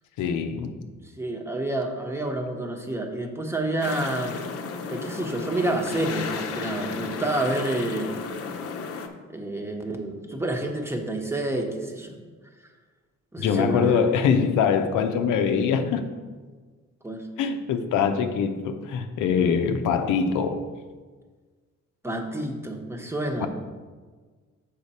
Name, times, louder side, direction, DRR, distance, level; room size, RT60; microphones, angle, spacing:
voice 1, 0.2-0.7 13.4-16.0 17.4-20.6 23.4-23.5, left 6 dB, 85° left, 7 dB, 0.7 m, -23 dB
voice 2, 1.2-4.4 4.9-8.1 9.3-12.2 13.3-14.2 17.0-17.2 22.0-23.5, right 1 dB, 10° right, 3 dB, 1.0 m, -29 dB
sound 1, 3.8-9.1, left 5 dB, 50° left, 0.8 m, -33 dB
6.6 x 5.6 x 4.2 m, 1.4 s
cardioid pair, 90°, 30 cm